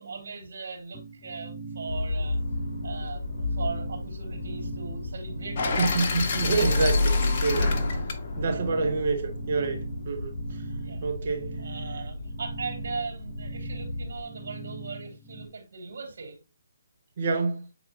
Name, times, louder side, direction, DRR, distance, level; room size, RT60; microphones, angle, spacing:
voice 1, 0.0-2.4 2.8-5.9 10.7-11.0 11.6-16.4, right 4 dB, 65° right, 3.1 m, -39 dB
sound 1, 0.9-15.5, right 3 dB, 10° left, 1.1 m, -41 dB
Motor vehicle (road), 1.9-14.2, left 2 dB, 75° left, 0.9 m, -35 dB
sound 2, 5.6-9.6, left 3 dB, 40° left, 1.3 m, -27 dB
voice 2, 5.8-7.8 8.3-10.4 11.0-11.6 17.2-17.7, right 4 dB, 50° right, 1.9 m, -28 dB
8.3 x 4.2 x 2.8 m
figure-of-eight pair, 150°, 0 cm